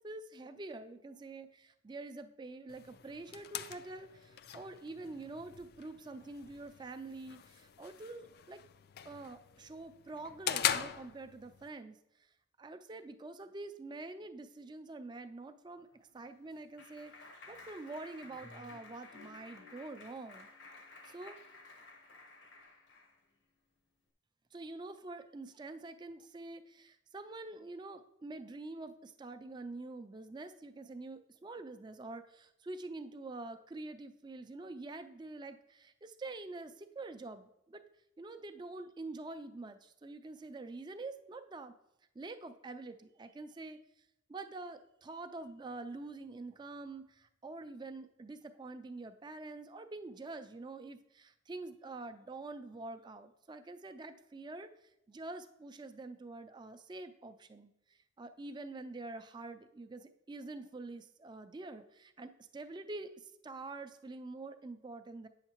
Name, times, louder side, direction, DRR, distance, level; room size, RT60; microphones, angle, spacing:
voice 1, 0.0-8.6 9.0-12.0 12.6-17.1 17.5-20.5 21.0-21.4 24.5-37.8 38.2-41.7 42.1-43.8 44.3-54.7 55.1-65.3, right 2 dB, 25° right, 9 dB, 0.4 m, -46 dB
sound 1, 2.7-11.7, left 9 dB, 55° left, 0.3 m, -41 dB
Clapping, 15.9-23.2, left 3 dB, 75° left, 0.9 m, -54 dB
8.8 x 6.5 x 3.0 m, 0.82 s
head